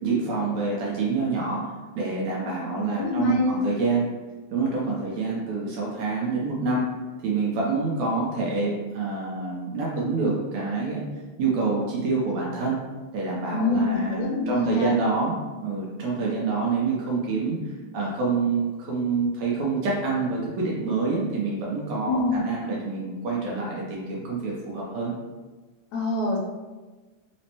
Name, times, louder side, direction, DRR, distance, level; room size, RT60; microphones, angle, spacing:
voice 1, 0.0-4.1 4.5-6.8 7.2-11.0 11.4-12.8 13.1-15.4 15.6-25.1, right 4 dB, 80° right, -4 dB, 1.7 m, -27 dB
voice 2, 2.7-3.6 13.5-15.0 22.1-22.4 25.9-26.4, left 2 dB, 80° left, -2 dB, 1.8 m, -25 dB
5.1 x 2.0 x 2.8 m, 1.2 s
omnidirectional pair, 3.5 m